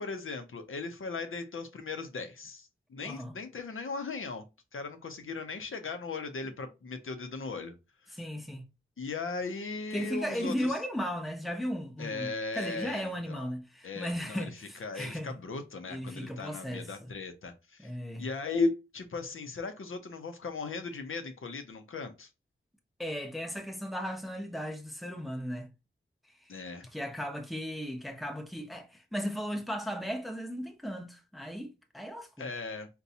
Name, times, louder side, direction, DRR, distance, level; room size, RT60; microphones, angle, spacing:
voice 1, 0.0-4.4 4.7-7.7 8.1-8.2 9.0-10.8 12.0-13.5 13.8-14.5 14.8-17.9 18.2-22.3 26.5-26.9 32.4-32.9, left 4 dB, 75° left, 0.6 m, -37 dB
voice 2, 3.0-3.3 8.1-8.6 9.9-15.3 15.9-17.1 17.8-18.3 23.0-25.7 26.4-26.6 26.9-32.5, equal, ahead, 0.7 m, -36 dB
4.0 x 2.2 x 2.7 m
wide cardioid pair, 60°, 21 cm